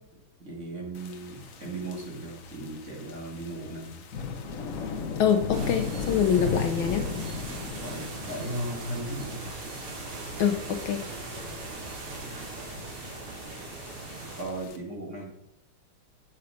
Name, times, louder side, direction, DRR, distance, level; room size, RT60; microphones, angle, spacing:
voice 1, 0.4-4.0 7.5-9.5 14.4-15.3, right 1 dB, 35° right, -1 dB, 2.3 m, -37 dB
sound 1, 0.9-14.8, left 5 dB, 55° left, 1.0 m, -38 dB
voice 2, 5.2-7.0 10.4-11.0, left 8 dB, 70° left, 6 dB, 1.5 m, -25 dB
sound 2, 5.5-14.4, right 3 dB, 75° right, 2.6 m, -40 dB
8.1 x 7.1 x 5.1 m, 0.76 s
omnidirectional pair, 2.4 m